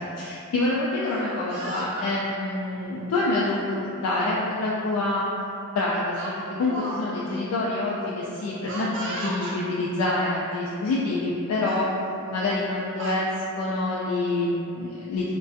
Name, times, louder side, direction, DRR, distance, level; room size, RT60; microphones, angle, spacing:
voice 1, 0.2-5.2 5.7-11.9 12.3-13.3 13.6-15.3, left 2 dB, 80° left, -4 dB, 0.3 m, -26 dB
Speech, 1.0-2.1 3.0-3.2 4.5-4.6 5.0-5.2 6.2-7.0 7.3-7.4 8.7-9.6 10.5-10.6 11.0-11.3 11.6-11.9 12.7-13.2, right 1 dB, 55° right, 0.4 m, -36 dB
2.3 x 2.2 x 2.5 m, 2.7 s
head